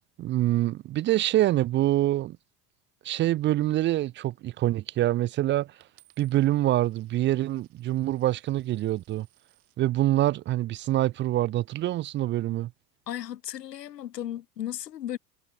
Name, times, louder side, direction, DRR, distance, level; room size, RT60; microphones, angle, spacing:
voice 1, 0.2-2.4 3.0-5.7 6.2-9.3 9.8-12.7, right 14 dB, 25° right, 0.5 m, -25 dB
Coin (dropping), 5.8-9.8 10.5-10.9, right 22 dB, 60° right, 7.8 m, -65 dB
voice 2, 13.1-15.2, left 11 dB, 75° left, 1.5 m, -35 dB
figure-of-eight pair, 75°, 49 cm